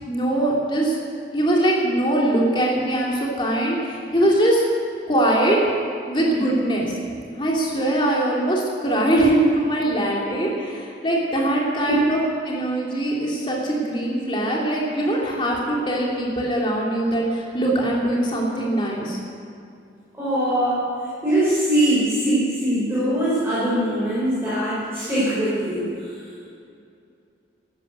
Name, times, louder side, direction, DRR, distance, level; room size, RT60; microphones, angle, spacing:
voice 1, 0.1-1.0 1.3-4.6 5.1-5.6 6.1-6.9 7.3-12.2 12.4-19.2, right 1 dB, 30° left, -3 dB, 3.1 m, -22 dB
voice 2, 20.1-20.8 21.2-26.1, right 1 dB, 15° right, -10 dB, 4.8 m, -22 dB
13.0 x 12.0 x 8.1 m, 2.5 s
head